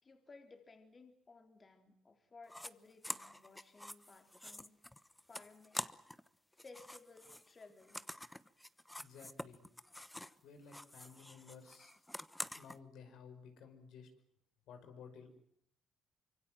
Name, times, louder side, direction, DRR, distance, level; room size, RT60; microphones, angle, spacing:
voice 1, 0.0-4.8 5.3-6.0 6.6-8.0, left 3 dB, 35° left, 5 dB, 3.7 m, -59 dB
sound 1, 2.5-2.7 3.0-6.3 6.5-10.4 10.7-12.8, left 1 dB, 10° left, 1.1 m, -47 dB
voice 2, 9.0-9.7 10.4-11.9 12.6-14.1 14.7-15.4, left 6 dB, 85° left, 6 dB, 5.6 m, -55 dB
26.0 x 23.5 x 7.6 m, 0.67 s
cardioid pair, 90°, 0 cm